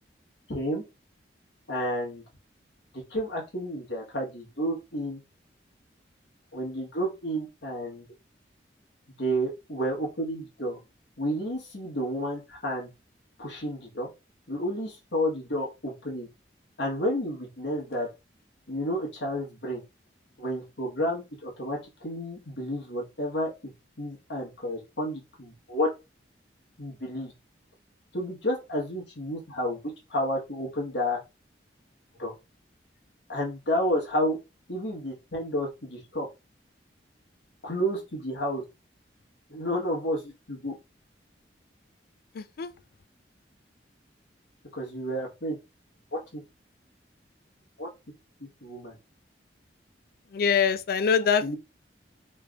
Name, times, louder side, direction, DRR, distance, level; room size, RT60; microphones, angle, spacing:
voice 1, 0.5-0.8 1.7-2.2 2.9-5.2 6.5-8.0 9.1-10.8 11.2-12.9 13.4-14.1 14.5-16.3 16.8-18.1 18.7-19.8 20.4-23.5 24.0-25.9 26.8-27.3 28.1-31.2 32.2-32.3 33.3-34.4 34.7-36.3 37.6-38.6 39.5-40.8 44.7-45.6 46.1-46.4 47.8-47.9 48.6-49.0 51.4-51.6, equal, 75° left, 1.3 m, -31 dB
voice 2, 42.3-42.7 50.3-51.6, left 6 dB, 55° left, 0.3 m, -24 dB
3.3 x 3.2 x 2.4 m
head